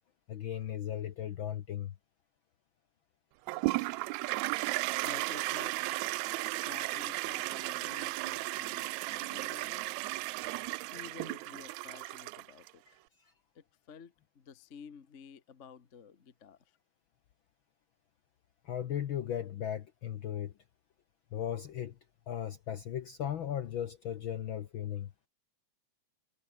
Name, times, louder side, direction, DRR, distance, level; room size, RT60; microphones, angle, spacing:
voice 1, 0.3-1.9 18.6-20.5 21.3-21.9 22.3-25.1, left 10 dB, 80° left, 1.1 m, -36 dB
Toilet flush, 3.5-12.7, right 21 dB, 80° right, 1.6 m, -35 dB
voice 2, 5.0-5.9 6.4-9.9 10.9-13.0 13.5-16.6, left 6 dB, 45° left, 0.9 m, -52 dB
omnidirectional pair, 3.7 m